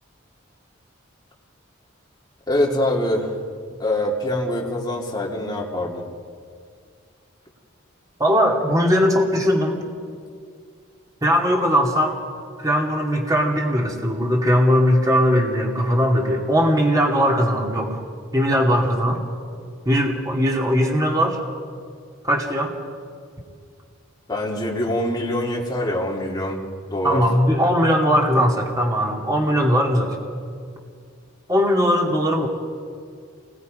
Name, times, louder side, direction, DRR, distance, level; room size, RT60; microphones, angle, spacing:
voice 1, 2.5-3.3 3.8-6.1 24.3-26.6 26.9-27.2, left 1 dB, 20° left, -3 dB, 2.8 m, -24 dB
voice 2, 8.2-9.8 11.2-12.2 12.6-18.0 18.3-19.2 19.9-21.4 22.2-22.8 27.0-30.2 31.5-32.5, equal, 20° right, 0 dB, 2.4 m, -19 dB
28.0 x 21.0 x 5.3 m, 2.2 s
head